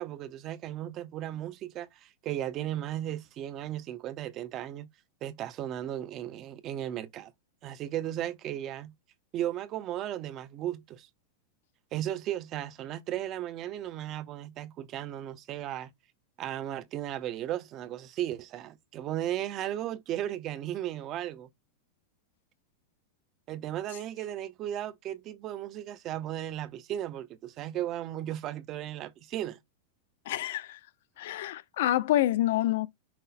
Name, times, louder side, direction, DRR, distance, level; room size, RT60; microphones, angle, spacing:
voice 1, 0.0-4.9 5.2-7.3 7.6-8.9 9.3-11.1 11.9-15.9 16.4-21.5 23.5-29.6, right 12 dB, 30° right, 0.5 m, -35 dB
voice 2, 30.3-30.8 31.2-32.9, left 14 dB, 65° left, 0.4 m, -27 dB
5.7 x 2.0 x 4.1 m
supercardioid pair, 165°, 0 cm